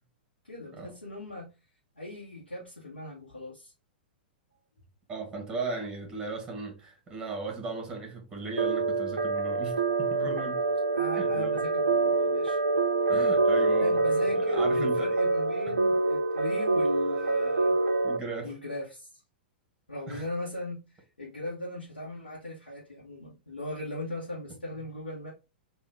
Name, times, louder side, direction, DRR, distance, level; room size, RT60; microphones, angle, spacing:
voice 1, 0.4-1.5 2.0-3.7 10.9-12.6 13.8-17.7 18.4-19.2 19.9-25.3, left 1 dB, 80° left, 1.0 m, -38 dB
voice 2, 5.1-10.6 11.1-11.6 13.1-14.0 14.3-15.1 18.0-18.5 20.1-20.3, right 3 dB, 15° right, 1.3 m, -36 dB
sound 1, 8.6-18.2, right 3 dB, 75° right, 0.4 m, -26 dB
3.5 x 2.4 x 3.5 m
figure-of-eight pair, 100°, 5 cm